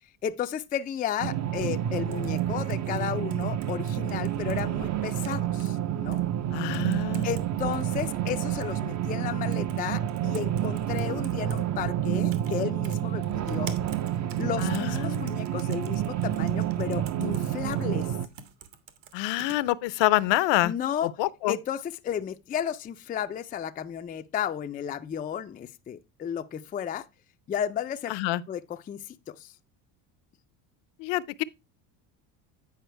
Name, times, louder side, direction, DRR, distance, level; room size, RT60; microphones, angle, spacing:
voice 1, 0.2-6.2 7.2-13.8 14.4-18.2 20.6-21.1 21.5-27.1 27.5-28.1 28.5-29.5, left 9 dB, 20° left, 0.4 m, -33 dB
sound 1, 1.2-18.3, right 11 dB, 35° right, 0.5 m, -29 dB
sound 2, 2.1-4.6 5.0-5.7 6.1-6.2 6.7-7.4 7.7-8.7 9.5-9.8 10.1-11.6 12.3-12.6 12.8-19.6, right 7 dB, 65° right, 1.7 m, -47 dB
voice 2, 6.5-7.3 14.6-15.3 19.1-20.7 21.2-21.6 28.1-28.4 31.0-31.4, left 17 dB, 60° left, 0.6 m, -26 dB
9.4 x 4.9 x 4.5 m
cardioid pair, 120°, 49 cm